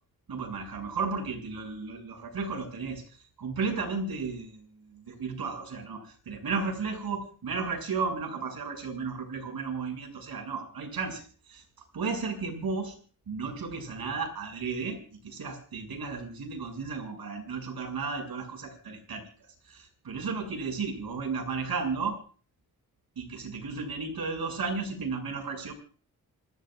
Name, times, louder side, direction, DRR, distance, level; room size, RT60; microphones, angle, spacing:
voice 1, 0.3-11.6 11.9-13.0 13.3-19.2 19.7-22.2 23.2-25.7, right 4 dB, 80° right, 3 dB, 7.3 m, -34 dB
27.5 x 18.0 x 2.5 m, 0.41 s
wide cardioid pair, 125°, 36 cm